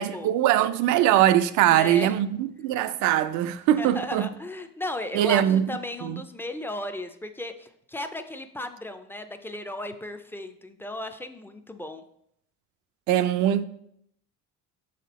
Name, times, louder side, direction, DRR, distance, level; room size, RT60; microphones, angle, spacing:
voice 1, 0.0-4.3 5.1-5.7 6.0-6.2 13.1-13.6, right 12 dB, 80° right, 0.5 m, -22 dB
voice 2, 1.6-2.1 3.8-12.0, left 1 dB, 10° left, 0.4 m, -35 dB
6.2 x 4.3 x 4.1 m
cardioid pair, 125°, 29 cm